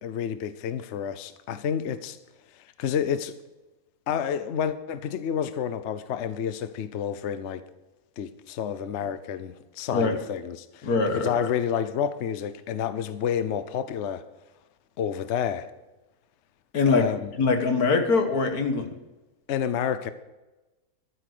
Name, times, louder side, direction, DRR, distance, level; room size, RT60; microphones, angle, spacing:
voice 1, 0.0-2.2 2.6-3.3 4.1-7.6 8.2-14.3 15.0-15.7 16.9-17.3 19.5-20.1, left 8 dB, 60° left, 0.9 m, -29 dB
voice 2, 10.8-11.4 16.7-17.1 17.4-18.9, left 4 dB, 85° left, 2.0 m, -22 dB
12.5 x 9.1 x 6.7 m
omnidirectional pair, 1.5 m